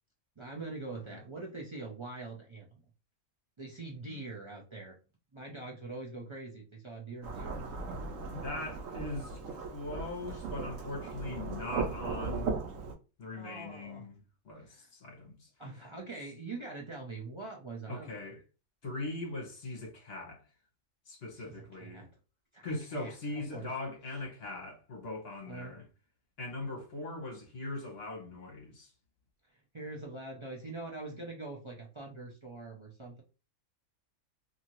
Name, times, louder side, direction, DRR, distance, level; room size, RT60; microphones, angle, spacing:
voice 1, 0.4-2.8 3.6-5.0 5.3-7.6 13.3-14.1 14.6-14.9 15.6-18.2 21.3-22.1 22.5-22.7 22.9-23.7 25.5-25.8 29.5-33.2, right 3 dB, 40° right, 0.4 m, -43 dB
Thunderstorm / Rain, 7.2-12.9, right 4 dB, 85° right, 1.0 m, -37 dB
voice 2, 8.3-12.6 13.2-14.2 14.4-15.5 17.9-18.4 18.8-20.4 21.1-22.1 22.6-25.9 26.4-28.9, left 2 dB, 55° left, 1.2 m, -40 dB
2.8 x 2.6 x 2.9 m
omnidirectional pair, 1.3 m